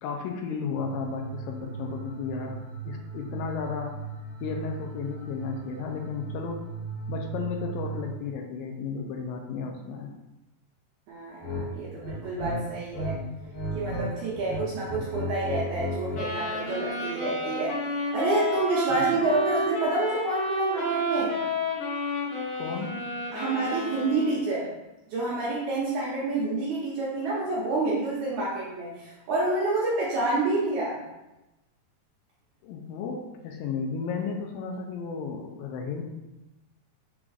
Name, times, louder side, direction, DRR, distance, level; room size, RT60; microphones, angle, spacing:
voice 1, 0.0-2.6 2.9-3.9 4.4-6.6 7.1-10.1 18.9-19.2 22.6-22.9 32.6-36.0, left 5 dB, 85° left, 2 dB, 2.2 m, -33 dB
sound 1, 0.7-8.2, right 7 dB, 90° right, 1.0 m, -38 dB
voice 2, 11.1-11.5 11.7-13.2 13.7-17.8 18.1-21.4 23.3-24.7 25.1-31.0, right 2 dB, 70° right, -6 dB, 1.9 m, -28 dB
sound 2, 11.4-11.6 12.0-13.1 13.4-14.1 14.3-16.3, left 1 dB, 45° left, 1.9 m, -33 dB
sound 3, 16.1-24.5, equal, 60° left, 2.9 m, -30 dB
6.1 x 3.6 x 2.4 m, 0.98 s
omnidirectional pair, 4.2 m